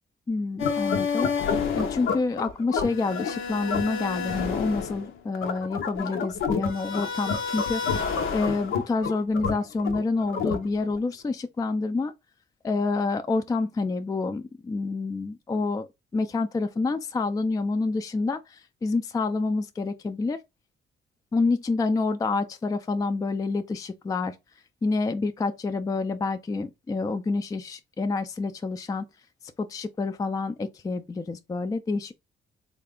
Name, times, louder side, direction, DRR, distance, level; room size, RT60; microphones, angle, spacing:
voice 1, 0.3-1.3 1.7-12.1 12.6-15.9 16.1-20.4 21.3-24.4 24.8-29.0 29.6-32.1, left 3 dB, 20° left, 0.3 m, -28 dB
sound 1, 0.6-11.0, left 6 dB, 85° left, 0.7 m, -29 dB
3.4 x 2.4 x 3.5 m
cardioid pair, 90°, 20 cm